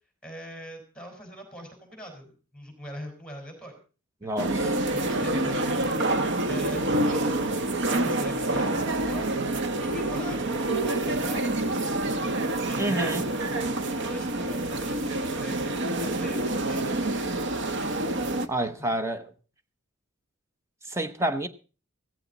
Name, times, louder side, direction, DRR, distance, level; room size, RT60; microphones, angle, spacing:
voice 1, 0.2-3.8 4.2-4.3 4.9-5.9 6.5-9.3 9.8-10.5 10.8-17.4 18.8-19.0, equal, 5° left, 4.2 m, -43 dB
voice 2, 4.2-4.7 12.8-13.2 18.5-19.3 20.9-21.5, right 1 dB, 15° right, 0.9 m, -28 dB
sound 1, 4.4-18.5, right 2 dB, 55° right, 1.0 m, -27 dB
15.5 x 14.5 x 4.0 m
head